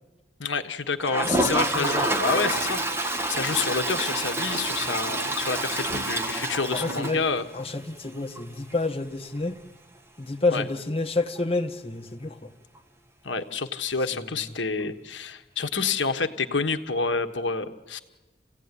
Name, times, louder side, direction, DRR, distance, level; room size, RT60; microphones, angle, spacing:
voice 1, 0.4-7.4 10.5-10.6 13.2-18.0, left 4 dB, 85° left, 1.4 m, -28 dB
Toilet flush, 1.0-7.7 8.1-8.2 8.4-8.5 8.7-8.8 11.4-11.5 12.8-12.9, right 1 dB, 15° right, 2.1 m, -28 dB
voice 2, 1.5-2.1 6.7-7.2 7.5-9.6 10.2-12.5 14.2-14.3, left 3 dB, 30° left, 1.6 m, -29 dB
29.0 x 16.5 x 9.8 m
head